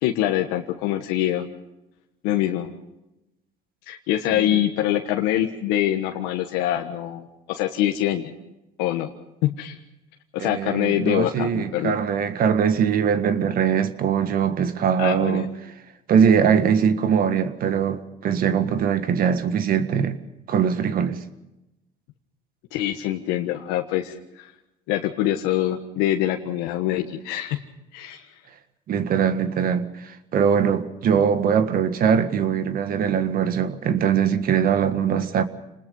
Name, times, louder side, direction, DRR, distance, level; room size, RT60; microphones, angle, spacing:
voice 1, 0.0-1.5 2.2-2.7 3.9-8.3 8.8-9.1 9.4-9.7 10.3-12.0 15.0-15.5 22.7-24.5 24.9-27.6 27.9-28.3, left 12 dB, 90° left, 1.4 m, -24 dB
voice 2, 4.3-4.6 10.4-15.5 16.1-20.2 20.5-21.2 28.9-35.4, right 7 dB, 55° right, 1.7 m, -21 dB
27.0 x 20.5 x 5.5 m
supercardioid pair, 95°, 17 cm